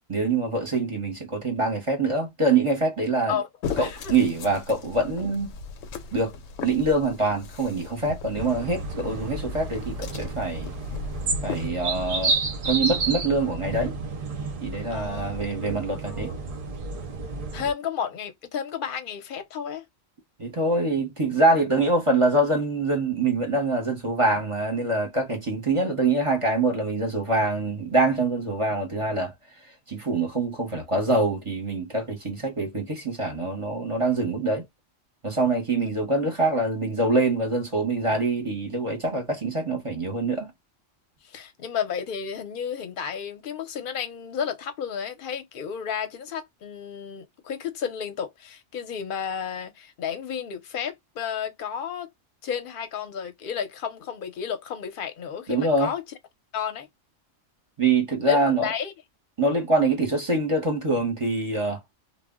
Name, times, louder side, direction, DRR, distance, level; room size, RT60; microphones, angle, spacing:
voice 1, 0.1-3.4 3.8-5.5 6.1-6.3 6.6-10.7 11.4-12.4 12.6-13.9 14.6-16.3 20.4-29.3 29.9-34.7 35.2-40.5 55.5-55.9 57.8-58.7 59.4-61.8, right 2 dB, 30° right, 0.7 m, -24 dB
sound 1, 3.6-11.7, left 5 dB, 80° left, 0.9 m, -37 dB
voice 2, 3.8-4.1 14.9-15.4 16.0-16.3 17.5-19.9 41.2-52.1 52.4-56.0 56.5-56.9 58.2-58.9, left 7 dB, 50° left, 0.7 m, -32 dB
sound 2, 8.4-17.7, right 3 dB, 60° right, 0.4 m, -31 dB
2.1 x 2.1 x 3.5 m
omnidirectional pair, 1.3 m